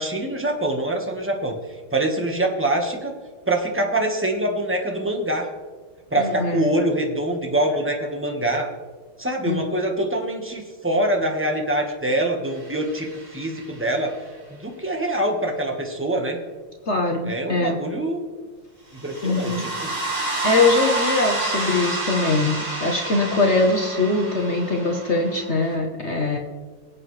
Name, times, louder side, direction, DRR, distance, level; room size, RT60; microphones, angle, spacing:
voice 1, 0.0-1.6 1.9-3.1 3.5-5.5 6.1-8.7 9.2-13.1 13.3-14.2 14.5-16.4 17.2-18.2 19.0-19.9, right 1 dB, 10° right, 2 dB, 0.9 m, -24 dB
voice 2, 6.2-6.7 9.5-9.6 16.9-17.8 19.2-19.7 20.4-26.4, left 3 dB, 45° left, 1 dB, 1.0 m, -22 dB
sound 1, 12.7-13.7 19.0-25.7, right 2 dB, 75° right, 4.4 m, -29 dB
22.5 x 8.3 x 3.3 m, 1.4 s
omnidirectional pair, 2.3 m